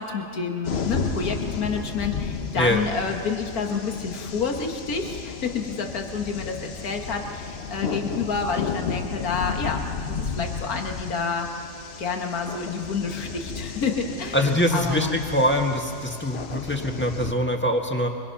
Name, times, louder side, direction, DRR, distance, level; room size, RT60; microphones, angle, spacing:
voice 1, 0.0-11.5 12.0-15.2, left 5 dB, 80° left, 3 dB, 2.1 m, -29 dB
sound 1, 0.6-17.3, left 5 dB, 50° left, 1.1 m, -33 dB
voice 2, 14.3-18.1, equal, 10° left, 2 dB, 1.7 m, -23 dB
26.0 x 24.5 x 5.9 m, 2.3 s
omnidirectional pair, 1.5 m